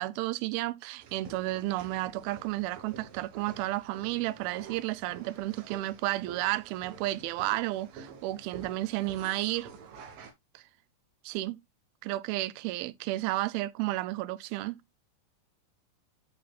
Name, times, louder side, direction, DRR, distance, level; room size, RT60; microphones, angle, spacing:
voice 1, 0.0-9.7 10.5-10.6 11.2-11.6 12.0-14.8, right 17 dB, 85° right, 2.4 m, -32 dB
sound 1, 1.0-10.3, right 6 dB, 70° right, 2.8 m, -49 dB
11.5 x 4.2 x 2.3 m
omnidirectional pair, 4.3 m